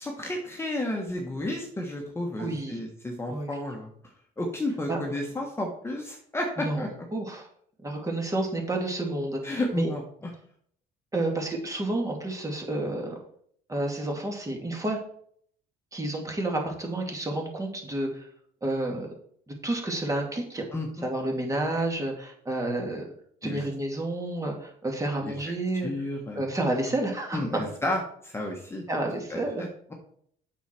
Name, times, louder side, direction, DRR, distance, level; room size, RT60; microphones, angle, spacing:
voice 1, 0.0-3.9 4.4-6.9 9.4-10.3 20.7-21.1 23.4-23.6 25.2-25.4 25.8-26.4 27.3-28.8 29.3-29.9, left 1 dB, 15° left, 0 dB, 1.5 m, -32 dB
voice 2, 2.4-2.8 3.3-3.5 4.9-5.0 6.6-6.9 7.1-7.4 7.8-9.9 11.1-13.2 13.7-15.0 15.9-18.1 18.6-19.1 19.5-20.6 21.0-23.0 23.4-25.9 26.4-27.4 28.9-29.6, right 2 dB, 20° right, 1 dB, 2.4 m, -30 dB
8.1 x 6.5 x 4.5 m, 0.63 s
cardioid pair, 110°, 17 cm